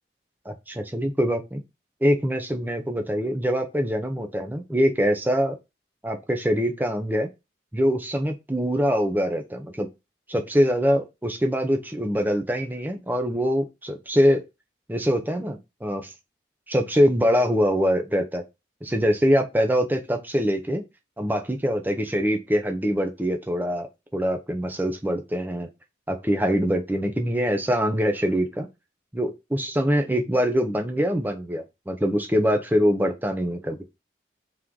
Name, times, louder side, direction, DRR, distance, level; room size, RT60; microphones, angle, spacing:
voice 1, 0.5-1.6 2.0-5.5 6.0-7.3 7.7-9.9 10.3-14.4 14.9-16.1 16.7-18.4 18.8-20.8 21.2-23.9 24.1-25.7 26.2-28.7 29.1-33.8, equal, 10° right, 0.6 m, -24 dB
3.5 x 3.1 x 3.8 m
head